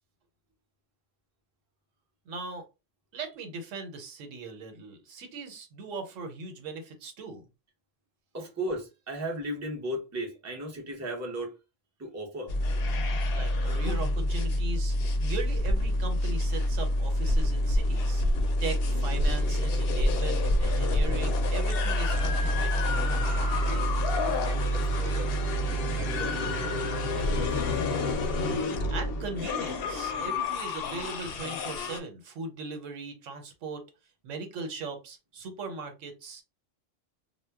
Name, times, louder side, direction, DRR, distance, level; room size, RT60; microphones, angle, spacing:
voice 1, 2.3-2.6 3.1-7.4 13.3-15.0 15.2-18.2 18.6-23.1 28.9-33.8 34.2-36.4, right 4 dB, 85° right, 1.1 m, -39 dB
voice 2, 8.3-11.5 12.0-12.5 23.6-25.3 25.9-26.6 27.1-28.1, right 1 dB, 20° right, 0.5 m, -37 dB
sound 1, 12.5-32.0, left 1 dB, 65° left, 0.6 m, -27 dB
2.2 x 2.0 x 3.3 m
omnidirectional pair, 1.3 m